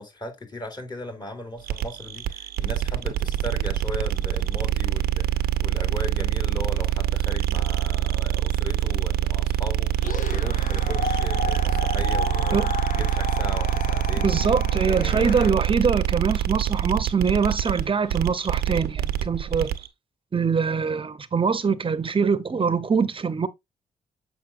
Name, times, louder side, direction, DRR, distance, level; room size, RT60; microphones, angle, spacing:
voice 1, 0.0-12.6 12.9-14.3 14.8-15.4, left 1 dB, 25° left, 3.1 m, -37 dB
sound 1, 1.6-19.9, right 12 dB, 85° right, 0.8 m, -25 dB
sound 2, 10.0-15.5, left 6 dB, 55° left, 0.8 m, -31 dB
voice 2, 14.2-19.7 20.3-23.5, right 5 dB, 35° right, 0.9 m, -23 dB
7.5 x 5.6 x 2.6 m
cardioid pair, 75°, 16 cm